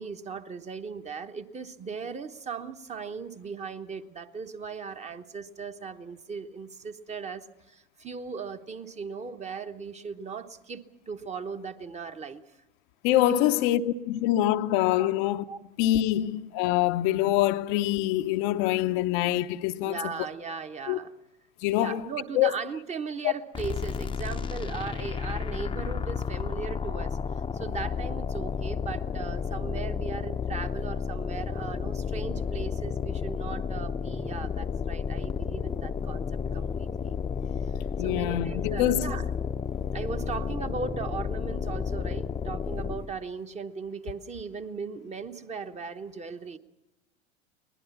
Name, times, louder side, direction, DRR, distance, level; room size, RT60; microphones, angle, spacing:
voice 1, 0.0-12.4 15.0-15.1 15.5-15.6 19.8-21.1 21.7-27.2 27.5-37.2 37.6-37.7 38.0-39.3 39.9-46.6, right 5 dB, 20° right, 1.1 m, -38 dB
voice 2, 13.0-15.5 15.8-20.0 20.9-21.0 21.6-22.1 22.3-22.5 23.2-23.3 38.0-39.1, left 13 dB, 45° left, 0.8 m, -25 dB
sound 1, 23.5-43.2, left 6 dB, 15° left, 0.8 m, -32 dB
22.0 x 20.0 x 7.1 m
figure-of-eight pair, 85°, 33 cm